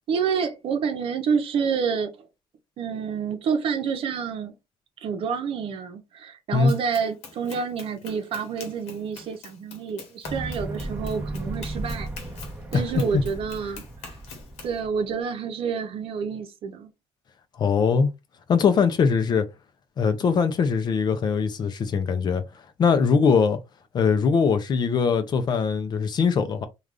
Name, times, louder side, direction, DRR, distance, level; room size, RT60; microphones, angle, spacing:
voice 1, 0.1-2.3 2.8-4.5 5.0-12.1 12.7-13.8 14.6-16.9, right 6 dB, 60° right, 0.7 m, -28 dB
Run, 6.7-14.8, left 5 dB, 85° left, 1.0 m, -45 dB
sound 1, 10.2-15.0, right 2 dB, 10° right, 0.8 m, -35 dB
voice 2, 17.6-18.1 18.5-19.5 20.0-22.4 22.8-23.6 23.9-26.7, left 5 dB, 45° left, 0.5 m, -21 dB
3.3 x 2.4 x 2.5 m
cardioid pair, 125°, 10 cm